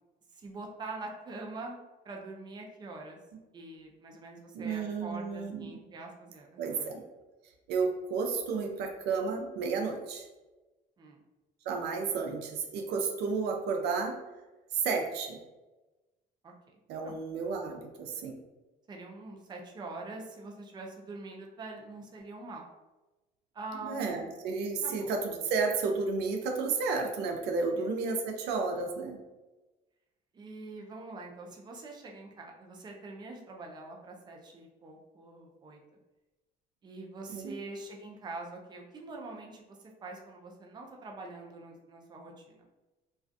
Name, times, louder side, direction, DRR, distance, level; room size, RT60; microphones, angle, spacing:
voice 1, 0.3-3.2 3.5-7.0 11.0-11.2 16.4-16.5 17.0-17.1 18.9-22.6 23.5-24.3 24.8-25.1 27.8-27.9 30.3-35.8 36.8-42.6, right 3 dB, 25° right, 0 dB, 0.4 m, -44 dB
voice 2, 4.5-5.7 6.6-7.0 7.7-10.3 11.7-14.1 14.7-15.4 16.9-18.3 23.8-29.2 37.3-37.5, right 4 dB, 80° right, 3 dB, 0.4 m, -32 dB
2.3 x 2.3 x 2.5 m, 1.1 s
cardioid pair, 110°, 17 cm